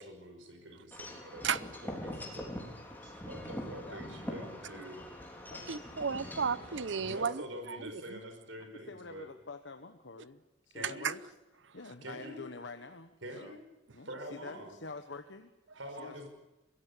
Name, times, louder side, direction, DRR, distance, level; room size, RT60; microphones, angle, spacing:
voice 1, 0.0-2.5 3.0-5.0 7.0-9.3 10.7-11.2 12.0-12.4 13.2-13.6 14.0-14.7 15.8-16.3, equal, 85° right, 4.9 m, -46 dB
Wind chime / Wind, 0.9-7.2, left 1 dB, 10° left, 3.6 m, -43 dB
voice 2, 3.4-4.4 5.0-5.1 5.5-6.0 8.6-11.3 11.7-13.6 13.9-15.5 16.0-16.3, left 3 dB, 70° left, 1.1 m, -48 dB
voice 3, 5.7-7.4 7.7-8.2 11.0-11.1, right 6 dB, 65° right, 0.7 m, -33 dB
23.5 x 16.0 x 8.4 m
head